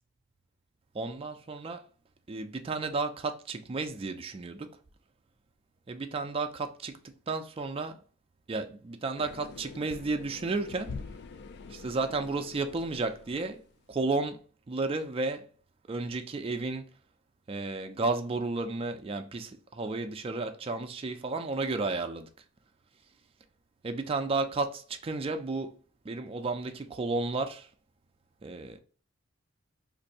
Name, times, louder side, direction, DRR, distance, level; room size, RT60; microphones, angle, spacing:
voice 1, 0.9-1.8 2.3-4.7 5.9-7.0 7.3-8.0 8.5-10.9 11.7-13.6 13.9-14.4 14.7-15.5 15.9-16.9 17.5-22.3 23.8-25.8 26.0-27.7 28.4-28.8, right 3 dB, 30° right, 0.4 m, -32 dB
sound 1, 9.2-13.8, left 4 dB, 55° left, 0.3 m, -45 dB
2.6 x 2.5 x 4.0 m
head